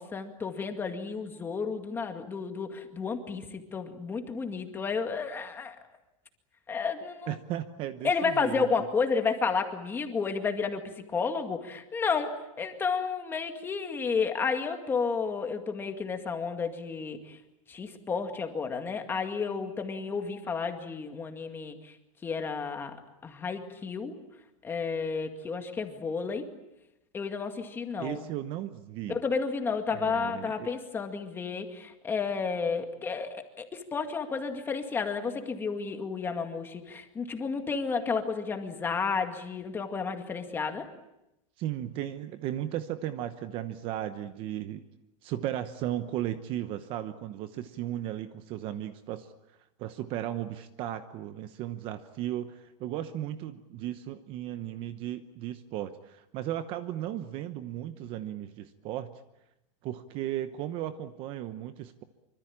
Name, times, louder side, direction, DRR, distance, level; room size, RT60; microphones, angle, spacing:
voice 1, 0.0-5.8 6.7-7.3 8.0-17.4 17.7-21.9 22.2-23.0 23.2-24.2 24.6-26.5 27.1-28.2 29.1-40.9, left 5 dB, 10° left, 5 dB, 2.1 m, -31 dB
voice 2, 7.3-8.7 28.0-29.2 29.9-30.7 41.6-44.8 45.2-49.3 49.8-59.1 59.8-62.0, right 12 dB, 30° right, 11 dB, 1.0 m, -35 dB
25.5 x 25.0 x 8.7 m, 0.88 s
supercardioid pair, 170°, 17 cm